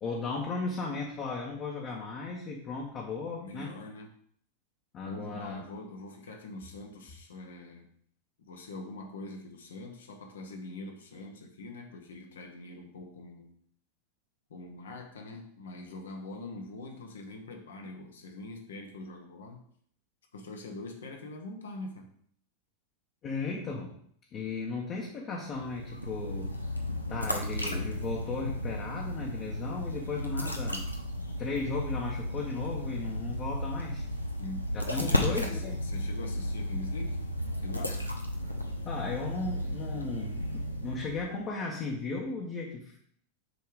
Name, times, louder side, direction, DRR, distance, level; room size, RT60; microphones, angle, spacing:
voice 1, 0.0-3.8 4.9-5.6 23.2-23.9 24.3-26.5 27.1-30.8 31.4-34.0 34.7-35.8 38.8-40.5 40.8-43.0, left 4 dB, 30° left, -1 dB, 1.1 m, -36 dB
voice 2, 3.4-4.1 5.0-7.9 8.5-13.5 14.5-19.6 20.3-22.1 34.4-37.2 37.6-38.1, left 2 dB, 65° left, 3 dB, 1.2 m, -43 dB
sound 1, 25.5-41.4, equal, 90° left, 0.8 m, -34 dB
6.4 x 3.5 x 4.9 m, 0.63 s
figure-of-eight pair, 90°, 0 cm